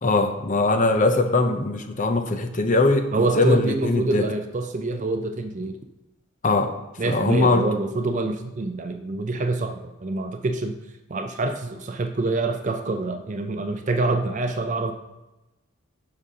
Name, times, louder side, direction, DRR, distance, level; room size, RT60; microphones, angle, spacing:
voice 1, 0.0-4.3 6.4-7.7, left 2 dB, 40° left, 7 dB, 0.7 m, -21 dB
voice 2, 3.1-5.8 7.0-10.7 11.1-14.9, right 2 dB, 35° right, 6 dB, 0.4 m, -26 dB
11.0 x 5.2 x 2.8 m, 1.0 s
head